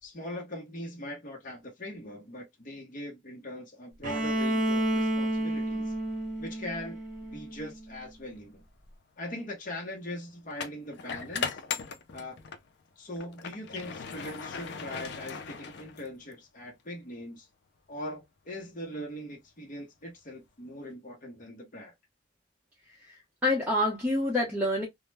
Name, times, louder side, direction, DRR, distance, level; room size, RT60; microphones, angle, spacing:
voice 1, 0.0-5.9 6.4-7.0 7.3-8.6 9.2-11.6 12.1-12.4 13.0-17.5 17.9-21.9, left 1 dB, 45° left, 0.8 m, -41 dB
Bowed string instrument, 4.0-7.9, right 1 dB, 45° right, 0.8 m, -30 dB
sound 1, 8.4-8.6 10.5-12.7 13.1-16.3, left 6 dB, 60° left, 0.5 m, -38 dB
voice 2, 23.0-24.9, left 1 dB, 5° right, 0.7 m, -27 dB
2.2 x 2.1 x 3.2 m
head